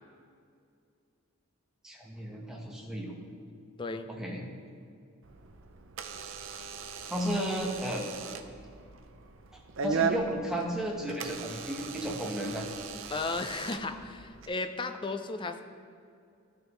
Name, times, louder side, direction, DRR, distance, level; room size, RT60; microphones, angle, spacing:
voice 1, 1.8-3.2 4.1-4.4 7.1-8.0 9.8-12.7, equal, 5° right, -2 dB, 1.0 m, -33 dB
voice 2, 3.8-4.1 13.1-15.6, left 3 dB, 20° left, 8 dB, 0.4 m, -34 dB
Door / Alarm, 5.2-14.5, right 5 dB, 60° right, 0.5 m, -38 dB
13.0 x 6.4 x 3.1 m, 2.4 s
head